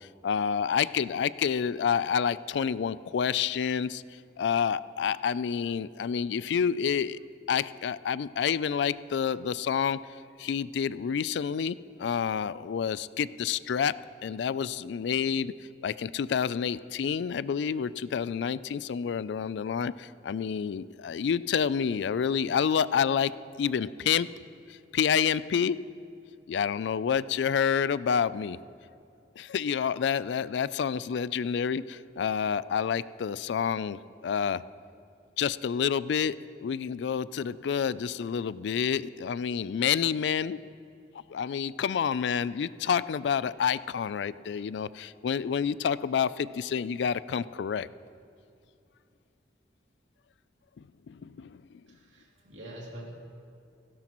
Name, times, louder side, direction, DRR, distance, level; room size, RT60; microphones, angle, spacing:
voice 1, 0.0-4.0 4.4-7.2 7.5-10.0 10.4-13.9 14.2-15.5 15.8-23.3 23.6-24.3 24.7-25.8 26.5-28.6 29.4-34.6 35.4-40.6 41.3-47.9 51.1-51.6, left 7 dB, 70° left, 17 dB, 0.3 m, -28 dB
voice 2, 51.9-53.2, right 1 dB, 85° right, -2 dB, 2.7 m, -45 dB
17.5 x 16.5 x 3.0 m, 2.5 s
head